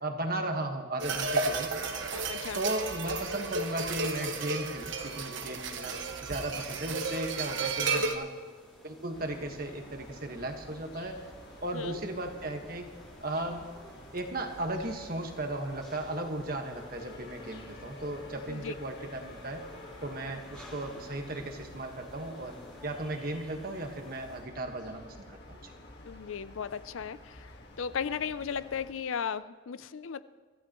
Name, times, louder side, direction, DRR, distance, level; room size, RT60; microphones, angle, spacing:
voice 1, 0.0-1.7 2.5-8.3 8.8-11.3 11.6-12.8 13.2-13.7 14.1-19.6 20.0-22.6 22.8-25.7, right 1 dB, 45° right, 4 dB, 1.5 m, -36 dB
sound 1, 1.0-8.1, right 3 dB, 65° right, 1.1 m, -33 dB
voice 2, 2.1-2.6 7.9-8.1 11.7-12.0 18.5-18.7 26.0-30.2, left 7 dB, 75° left, 15 dB, 0.5 m, -36 dB
sound 2, 6.6-24.4, equal, 5° left, 3.2 m, -55 dB
sound 3, 9.1-28.9, left 1 dB, 50° left, 1.7 m, -50 dB
24.0 x 15.0 x 3.1 m, 1.5 s
head